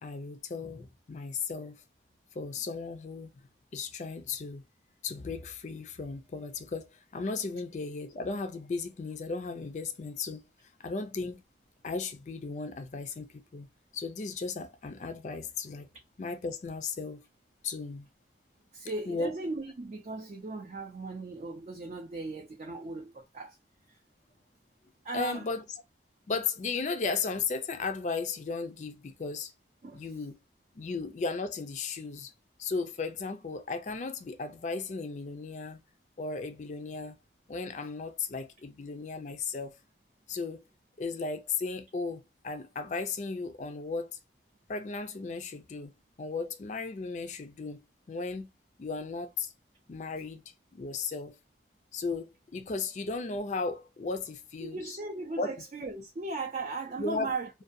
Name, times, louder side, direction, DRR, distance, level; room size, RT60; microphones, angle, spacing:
voice 1, 0.0-1.8 2.3-3.3 3.7-4.6 5.0-10.4 10.8-11.4 11.8-13.7 13.9-15.9 16.2-17.2 17.6-18.1 19.1-19.3 25.1-25.6 26.3-29.5 29.9-30.4 30.7-32.3 32.6-35.8 36.2-37.1 37.5-39.8 40.3-40.6 41.0-44.2 44.7-47.8 48.1-48.5 48.8-49.5 49.9-50.4 50.7-51.4 51.9-55.0 55.4-55.5 57.0-57.3, left 4 dB, 40° left, 0.4 m, -35 dB
voice 2, 18.7-23.6 23.9-24.0 25.0-25.5 29.8-30.0 54.6-57.5, right 3 dB, 40° right, 0.4 m, -37 dB
2.6 x 2.3 x 2.5 m
head